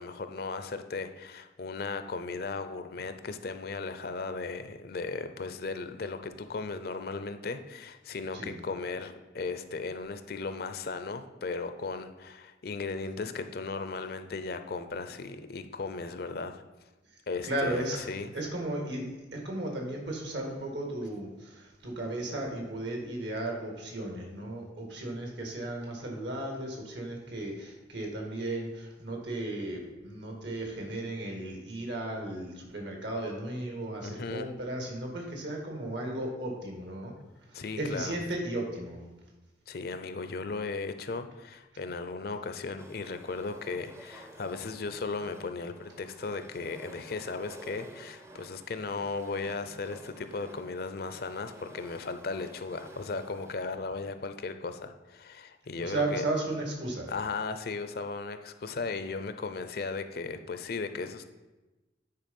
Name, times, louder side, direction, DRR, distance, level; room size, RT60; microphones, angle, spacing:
voice 1, 0.0-16.6 17.3-18.3 34.0-34.5 37.5-38.2 39.7-56.2 57.1-61.3, left 4 dB, 55° left, 9 dB, 0.5 m, -36 dB
voice 2, 17.4-18.0 18.3-37.1 37.5-39.0 55.8-57.1, right 1 dB, 75° right, 1 dB, 1.9 m, -35 dB
sound 1, 42.8-53.5, right 1 dB, 15° right, 0.6 m, -51 dB
9.1 x 4.7 x 5.3 m, 1.1 s
head